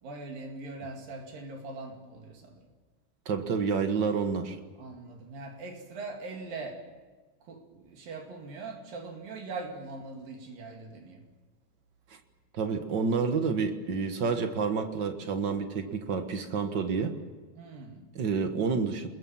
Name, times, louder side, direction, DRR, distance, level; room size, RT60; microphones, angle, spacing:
voice 1, 0.0-2.6 4.8-6.8 7.4-11.2 17.6-18.0, right 3 dB, 70° right, 3 dB, 4.1 m, -41 dB
voice 2, 3.2-4.6 12.1-12.2 12.5-17.1 18.1-19.1, right 5 dB, 55° right, 7 dB, 1.2 m, -29 dB
26.5 x 21.0 x 7.4 m, 1.4 s
omnidirectional pair, 4.2 m